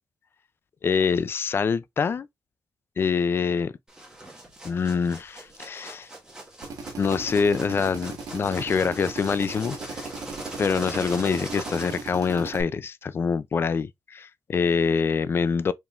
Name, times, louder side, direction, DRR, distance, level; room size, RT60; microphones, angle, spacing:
voice 1, 0.8-2.3 3.0-3.7 4.6-6.1 7.0-10.1 10.6-15.7, left 5 dB, 40° left, 0.4 m, -25 dB
sound 1, 3.9-12.6, right 1 dB, 10° right, 1.5 m, -41 dB
Drill, 6.6-12.6, right 4 dB, 80° right, 1.6 m, -38 dB
4.8 x 3.7 x 2.4 m
wide cardioid pair, 155°, 6 cm